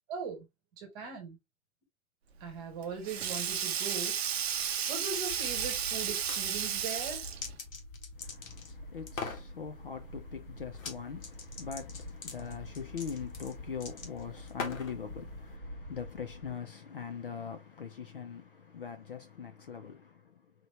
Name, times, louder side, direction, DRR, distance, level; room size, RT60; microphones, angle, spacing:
voice 1, 0.1-0.4 0.8-1.4 2.4-4.1 4.4-7.3, right 5 dB, 15° right, 1.2 m, -40 dB
Sink (filling or washing), 2.4-7.6, right 8 dB, 50° right, 0.6 m, -33 dB
Wind, 5.2-16.5, left 1 dB, ahead, 1.5 m, -47 dB
sound 1, 6.0-6.4 6.9-8.7 9.1-9.5 10.7-11.0 11.2-15.0, left 5 dB, 70° left, 1.9 m, -41 dB
voice 2, 8.2-20.5, left 7 dB, 40° left, 0.5 m, -42 dB
4.4 x 3.1 x 3.0 m
hypercardioid pair, 170°, 41 cm